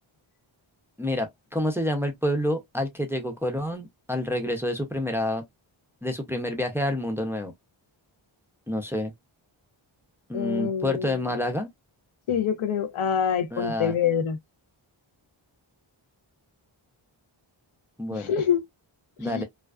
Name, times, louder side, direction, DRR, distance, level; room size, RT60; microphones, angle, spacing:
voice 1, 1.0-5.4 6.0-7.5 8.7-9.1 10.3-11.7 13.5-13.9 18.0-18.3 19.2-19.4, left 1 dB, 5° right, 0.4 m, -28 dB
voice 2, 10.3-11.2 12.3-14.4 18.1-18.6 19.2-19.4, left 8 dB, 80° left, 0.6 m, -26 dB
2.5 x 2.2 x 2.2 m
wide cardioid pair, 100°, 48 cm